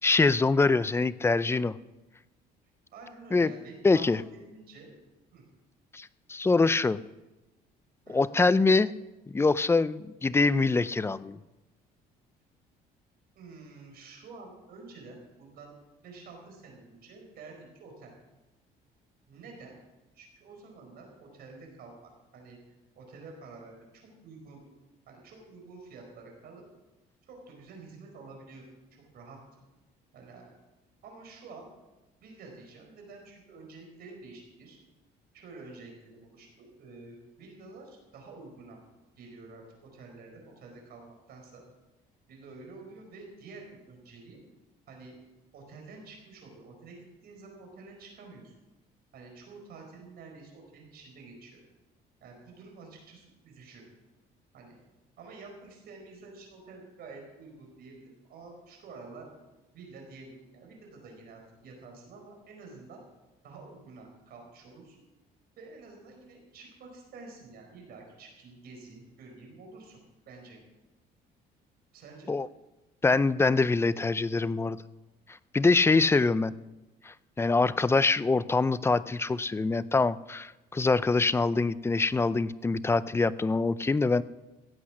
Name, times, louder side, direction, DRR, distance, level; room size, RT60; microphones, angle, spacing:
voice 1, 0.0-1.8 3.3-3.5 3.8-4.2 5.9-7.0 8.1-8.9 9.3-11.4 72.3-72.5 73.0-74.8 75.5-76.5 77.0-84.2, left 3 dB, 15° left, 17 dB, 0.4 m, -24 dB
voice 2, 2.9-4.9 5.3-5.4 8.0-8.2 13.3-15.7 16.0-18.1 19.3-19.8 20.1-22.6 22.9-24.6 25.1-26.6 27.3-28.6 29.1-29.4 30.1-30.5 31.0-31.7 32.2-34.8 35.3-38.8 39.2-39.6 39.9-41.6 42.3-44.4 44.9-45.1 45.5-48.5 49.1-51.6 52.2-53.8 54.5-54.8 55.2-59.3 59.7-63.0 63.4-65.0 65.6-70.6 71.9-72.3, right 3 dB, 65° right, 1 dB, 4.7 m, -49 dB
16.0 x 8.4 x 6.1 m, 1.0 s
cardioid pair, 110°, 17 cm